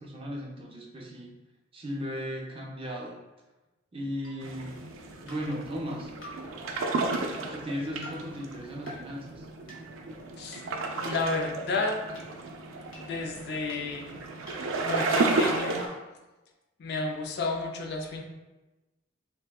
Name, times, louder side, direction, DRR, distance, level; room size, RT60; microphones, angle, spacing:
voice 1, 0.0-1.3 1.7-3.2 3.9-4.8 5.2-6.1 7.5-9.4, equal, 30° right, -1 dB, 0.5 m, -36 dB
sound 1, 4.2-4.3 5.3-5.4 6.2-6.3 7.1-7.2 8.0-8.1 8.9-9.0 9.7-9.8 10.5-10.6 11.3-11.4 12.2-12.3 12.9-13.0 13.7-13.8 14.5-14.6 14.8-16.0, left 1 dB, 80° left, 1.1 m, -44 dB
sound 2, 4.4-15.9, right 3 dB, 85° right, 0.4 m, -33 dB
voice 2, 11.0-12.0 12.9-14.2 14.8-15.8 16.8-18.2, left 3 dB, 55° left, 2 dB, 0.4 m, -31 dB
3.4 x 2.6 x 2.2 m, 1.1 s
head